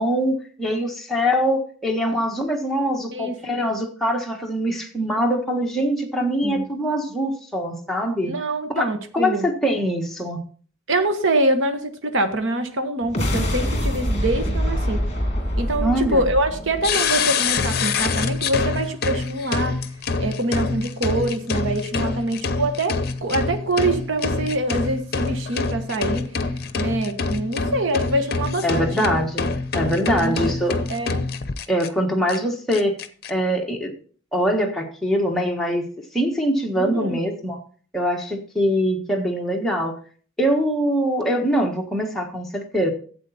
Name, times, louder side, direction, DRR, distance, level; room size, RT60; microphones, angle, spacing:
voice 1, 0.0-8.3 8.7-8.9 9.1-10.4 15.8-16.2 28.6-30.8 31.7-32.9 33.3-33.9 34.3-35.8 36.1-37.6 37.9-40.0 40.4-42.9, equal, ahead, -1 dB, 1.5 m, -23 dB
voice 2, 3.1-3.6 6.4-6.6 8.3-9.5 10.9-15.0 15.6-19.8 20.2-26.3 26.8-29.1 30.2-30.5 30.9-31.2 36.8-37.2, right 1 dB, 75° right, 7 dB, 1.2 m, -25 dB
sound 1, 13.0-17.5, equal, 30° left, 2.5 m, -25 dB
sound 2, 16.8-31.9 32.3-32.4 32.7-33.3, left 4 dB, 50° left, 0.8 m, -25 dB
12.0 x 8.2 x 4.2 m, 0.44 s
head